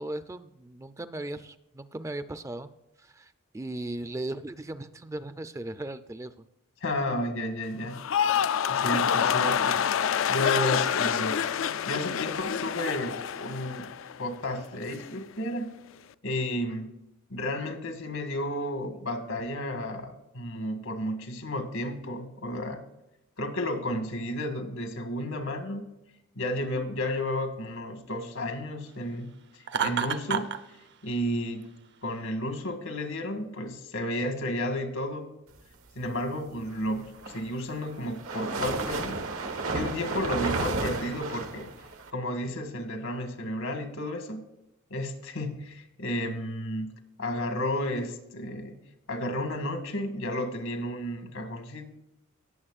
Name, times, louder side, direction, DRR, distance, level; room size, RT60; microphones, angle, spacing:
voice 1, 0.0-2.7 3.0-6.3, right 1 dB, 15° right, 12 dB, 0.4 m, -37 dB
voice 2, 6.8-8.0 8.7-9.8 10.3-11.4 11.9-13.9 14.2-15.7 16.2-16.9 17.3-22.8 23.4-25.9 26.4-29.3 29.8-30.6 31.0-31.7 32.0-35.3 36.0-41.7 42.1-44.5 44.9-48.8 49.1-51.9, left 1 dB, 80° left, 6 dB, 1.8 m, -32 dB
sound 1, 7.9-14.2 14.5-15.1, left 8 dB, 65° left, 0.4 m, -27 dB
Laughter, 29.7-30.6, right 7 dB, 55° right, 0.7 m, -28 dB
sound 2, 37.0-42.1, right 3 dB, 85° right, 1.3 m, -32 dB
18.5 x 7.2 x 2.4 m, 0.88 s
head